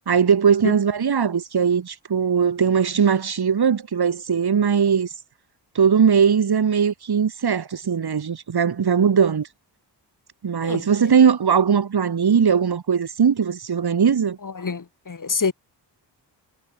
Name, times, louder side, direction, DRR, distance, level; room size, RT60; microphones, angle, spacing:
voice 1, 0.1-5.1 5.7-9.5 10.4-14.4, right 7 dB, 60° right, 2.5 m, -19 dB
voice 2, 14.4-15.5, left 5 dB, 45° left, 3.7 m, -26 dB
cardioid pair, 75°, 43 cm